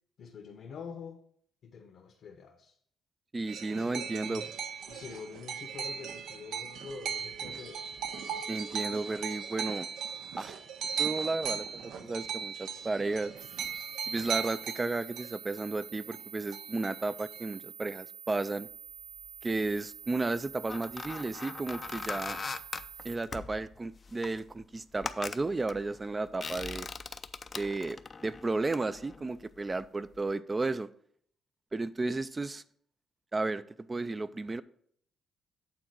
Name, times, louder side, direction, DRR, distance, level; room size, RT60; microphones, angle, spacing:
voice 1, 0.2-1.2 1.6-2.8 3.7-4.5 4.9-7.8, left 6 dB, 65° left, 3 dB, 0.9 m, -46 dB
voice 2, 3.3-4.4 8.5-9.9 10.4-10.6 11.0-13.3 14.1-18.7 19.4-22.4 23.0-26.9 27.6-30.9 31.7-32.6 33.3-34.6, right 3 dB, 25° right, 16 dB, 0.4 m, -33 dB
sound 1, 3.5-16.2 16.5-17.5, right 7 dB, 80° right, 0.7 m, -38 dB
sound 2, 13.4-23.2, right 7 dB, 50° right, 1.0 m, -48 dB
sound 3, 19.2-19.8 20.4-29.9 30.1-30.3, left 4 dB, 35° left, 0.5 m, -42 dB
8.6 x 3.8 x 6.0 m, 0.64 s
cardioid pair, 90°, 0 cm